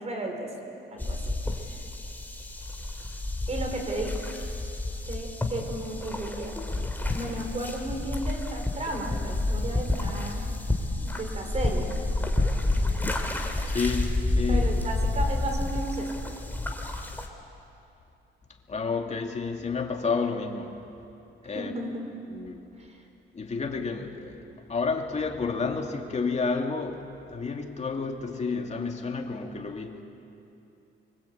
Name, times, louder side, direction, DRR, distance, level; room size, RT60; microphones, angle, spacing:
voice 1, 0.0-1.4 1.6-1.8 3.5-4.3 5.1-6.5 7.1-10.5 11.0-11.9 14.5-16.1 21.5-22.1 22.8-23.0, right 1 dB, 35° right, 3 dB, 5.2 m, -34 dB
sound 1, 1.0-17.3, left 2 dB, 10° left, 2.8 m, -29 dB
voice 2, 13.6-14.8 18.7-20.8 21.4-21.7 22.3-22.7 23.3-24.4 24.7-30.0, left 4 dB, 35° left, 2 dB, 2.6 m, -30 dB
26.5 x 24.5 x 8.7 m, 2.8 s
cardioid pair, 120°, 20 cm